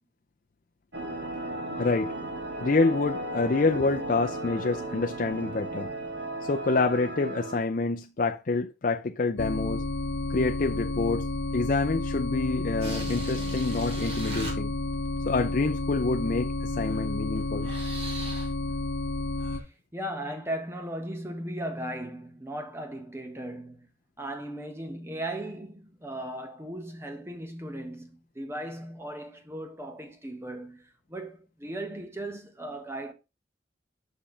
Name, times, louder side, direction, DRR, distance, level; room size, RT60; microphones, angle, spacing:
sound 1, 0.9-7.6, right 1 dB, 65° right, 1.8 m, -35 dB
voice 1, 1.8-2.1 2.6-5.9 6.5-9.8 10.3-11.3 11.5-14.7 15.3-17.7, left 3 dB, 45° left, 0.5 m, -27 dB
sound 2, 9.4-19.6, left 2 dB, 85° left, 1.0 m, -31 dB
sound 3, 12.7-14.5 16.8-17.0 17.4-18.6 19.4-19.6, right 1 dB, 35° right, 2.7 m, -39 dB
voice 2, 19.9-23.9 24.2-33.1, right 1 dB, 15° right, 1.3 m, -37 dB
6.8 x 5.7 x 3.9 m
head